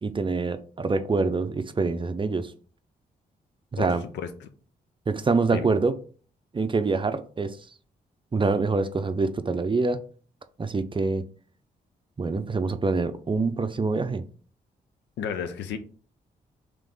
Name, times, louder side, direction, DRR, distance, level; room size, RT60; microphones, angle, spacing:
voice 1, 0.0-2.5 3.7-4.0 5.1-6.0 6.5-7.6 8.3-10.0 10.6-11.2 12.2-14.2, right 4 dB, 30° right, 0.5 m, -25 dB
voice 2, 3.8-4.5 5.5-5.7 15.2-15.8, left 7 dB, 80° left, 0.6 m, -33 dB
3.3 x 3.1 x 3.8 m
supercardioid pair, 50°, 18 cm